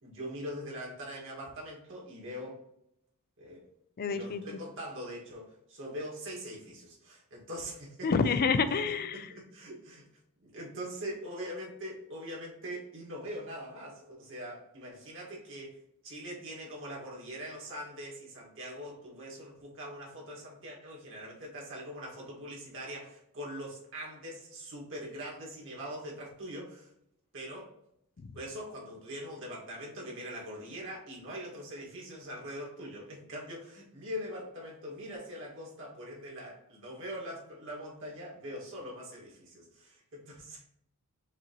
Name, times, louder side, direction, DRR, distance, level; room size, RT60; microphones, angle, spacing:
voice 1, 0.0-2.6 3.4-3.6 4.0-8.1 8.7-8.8 9.1-10.0 10.4-15.8 16.0-26.9 27.3-27.7 28.3-40.6, equal, 60° right, -3 dB, 1.8 m, -42 dB
voice 2, 4.0-4.4 8.0-9.3, left 5 dB, 45° left, 11 dB, 0.4 m, -28 dB
6.0 x 2.9 x 3.0 m, 0.77 s
head